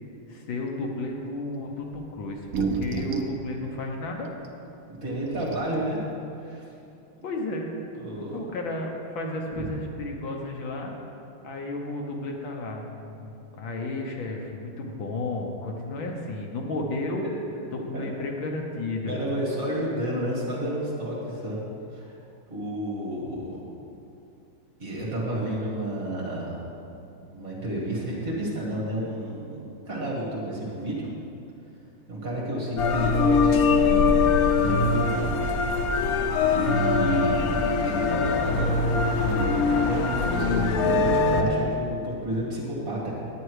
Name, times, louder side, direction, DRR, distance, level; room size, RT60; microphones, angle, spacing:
voice 1, 0.3-4.3 7.2-7.7 8.3-10.9 11.4-17.2 17.7-19.1, left 2 dB, 65° left, 1 dB, 1.6 m, -33 dB
sound 1, 1.9-2.0 2.4-3.4 4.4-4.5 5.1-5.2 5.4-5.8, right 5 dB, 70° right, 0.8 m, -29 dB
voice 2, 4.9-6.0 6.4-6.6 7.9-8.4 9.6-9.7 17.9-18.0 19.1-21.6 21.9-22.2 22.5-23.6 24.8-26.6 27.3-31.1 32.1-35.4 35.9-37.4 37.8-38.9 39.2-43.3, right 1 dB, 40° right, -5 dB, 2.3 m, -31 dB
sound 2, 32.8-41.4, left 4 dB, 90° left, 0.8 m, -22 dB
10.0 x 9.0 x 4.8 m, 2.7 s
omnidirectional pair, 2.4 m